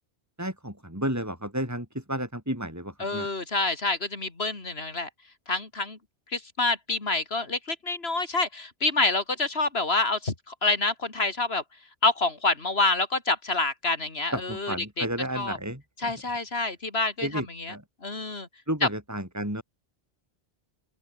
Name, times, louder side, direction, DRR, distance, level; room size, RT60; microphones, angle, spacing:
voice 1, 0.4-3.3 14.3-16.1 17.2-17.8 18.7-19.6, right 1 dB, 15° right, 6.5 m, -32 dB
voice 2, 3.0-5.1 5.5-6.0 6.3-11.6 12.0-15.1 15.3-15.6 16.0-17.8 18.0-18.5 18.8-18.9, left 3 dB, 70° left, 3.3 m, -27 dB
open air
omnidirectional pair, 1.1 m